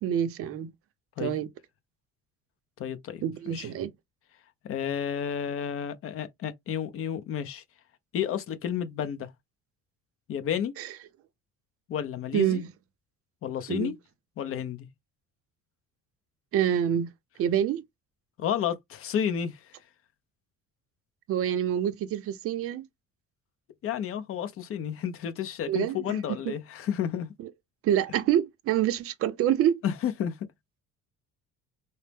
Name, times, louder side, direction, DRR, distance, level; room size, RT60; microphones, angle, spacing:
voice 1, 0.0-0.7 1.2-1.5 3.2-3.9 10.8-10.9 12.3-12.7 13.7-13.9 16.5-17.1 17.4-17.8 21.3-22.9 25.7-26.2 26.5-26.6 27.8-29.8, right 10 dB, 45° right, 0.5 m, -26 dB
voice 2, 2.8-3.7 4.6-7.6 8.1-9.3 10.3-10.7 11.9-12.6 13.4-13.9 14.4-14.9 18.4-19.8 23.8-27.3 29.8-30.4, left 9 dB, 45° left, 0.6 m, -31 dB
4.2 x 2.0 x 3.3 m
cardioid pair, 165°, 31 cm